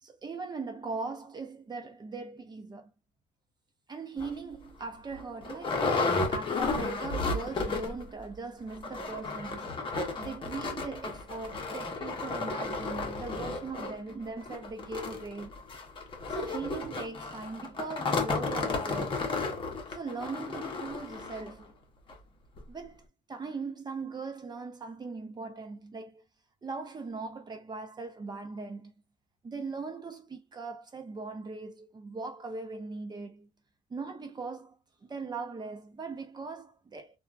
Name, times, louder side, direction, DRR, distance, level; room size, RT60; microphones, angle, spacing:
voice 1, 0.0-2.9 3.9-9.8 10.2-15.7 16.3-19.2 19.9-21.7 22.7-23.0 23.3-26.2 26.6-28.9 29.4-33.5 33.9-34.7 35.0-37.2, right 4 dB, 25° right, 0.7 m, -40 dB
sound 1, 4.2-4.3 4.8-4.9 5.1-8.1 8.3-8.4 8.7-21.5 22.1-22.2 22.6-22.7, left 3 dB, 30° left, 0.8 m, -33 dB
2.9 x 2.3 x 2.4 m
cardioid pair, 110°, 17 cm